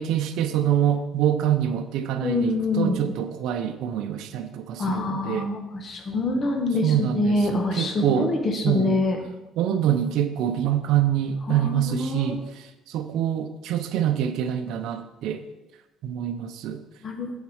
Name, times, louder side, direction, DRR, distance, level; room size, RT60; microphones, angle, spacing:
voice 1, 0.0-2.5 2.8-5.5 6.8-8.3 8.6-9.0 9.6-15.4 16.0-16.8, right 10 dB, 75° right, 7 dB, 0.6 m, -25 dB
voice 2, 2.2-3.0 4.8-9.2 11.5-12.3 17.0-17.3, left 2 dB, 35° left, 3 dB, 1.4 m, -25 dB
7.2 x 7.2 x 4.9 m, 1.0 s
cardioid pair, 135°, 0 cm